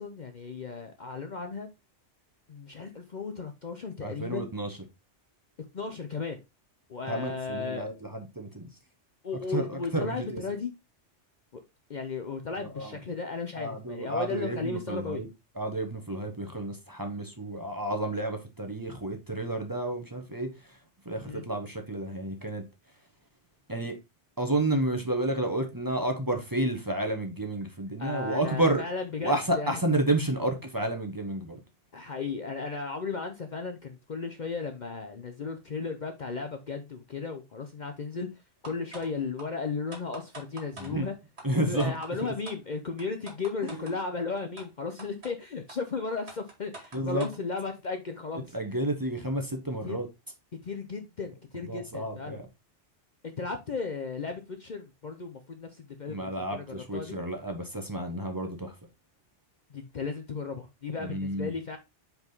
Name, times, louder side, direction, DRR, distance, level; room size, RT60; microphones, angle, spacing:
voice 1, 0.0-1.7 2.5-4.5 5.7-6.4 6.9-7.9 9.2-10.7 11.5-11.6 11.9-15.2 21.2-21.4 28.0-29.8 31.9-38.3 38.6-41.1 41.7-48.5 49.8-50.0 50.6-52.4 53.2-57.2 59.7-61.8, left 4 dB, 45° left, 0.7 m, -35 dB
voice 2, 4.0-4.8 7.1-8.7 9.5-10.4 12.6-13.0 13.5-15.3 15.5-20.8 21.0-22.6 23.7-24.0 24.4-28.8 29.2-31.6 40.8-41.1 41.4-42.3 43.6-43.8 46.9-47.3 48.5-50.1 51.7-52.5 56.1-58.7 61.0-61.5, right 1 dB, 20° right, 1.0 m, -31 dB
sound 1, 38.6-39.1 39.4-39.5 39.9-40.9 41.4-41.5 41.8-42.1 42.4-42.6 43.0-44.0 44.6-44.7 45.0-45.3 45.7-45.8 46.3-47.4, right 2 dB, 65° right, 2.3 m, -44 dB
5.2 x 4.9 x 3.9 m
omnidirectional pair, 1.2 m